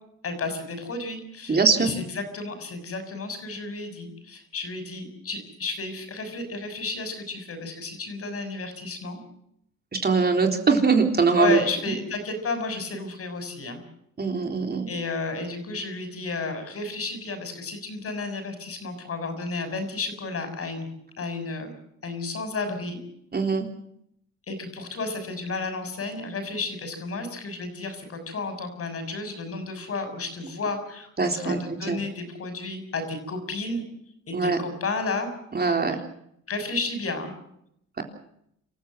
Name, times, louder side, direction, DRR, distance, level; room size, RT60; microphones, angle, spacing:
voice 1, 0.2-9.2 11.4-13.8 14.9-20.9 21.2-21.7 22.0-23.0 24.5-33.8 34.3-35.3 35.6-35.7 36.5-37.3, left 3 dB, 50° left, 8 dB, 6.4 m, -32 dB
voice 2, 1.5-1.9 9.9-11.6 14.2-14.9 23.3-23.7 31.2-32.0 34.3-34.6 35.5-36.0, right 4 dB, 30° right, 4 dB, 3.6 m, -22 dB
27.0 x 15.0 x 7.8 m, 0.74 s
cardioid pair, 90°, 30 cm